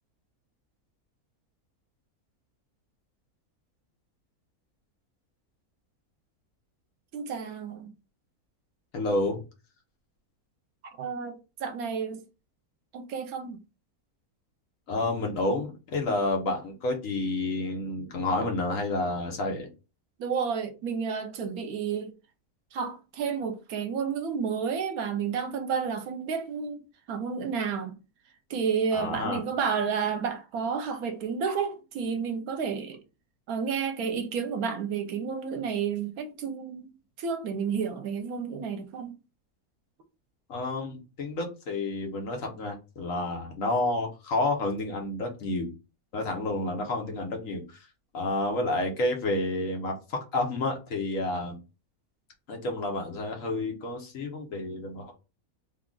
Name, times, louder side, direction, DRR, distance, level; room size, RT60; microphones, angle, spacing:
voice 1, 7.1-7.9 11.0-12.2 12.9-13.6 20.2-22.1 22.7-26.8 27.1-28.0 28.5-33.0 33.5-36.9 37.2-39.2, right 6 dB, 75° right, 1.1 m, -31 dB
voice 2, 8.9-9.4 14.9-19.7 28.9-29.4 40.5-45.7 46.1-47.9 48.1-51.6 52.5-55.1, left 2 dB, 65° left, 1.3 m, -30 dB
3.6 x 2.4 x 3.7 m
omnidirectional pair, 1.6 m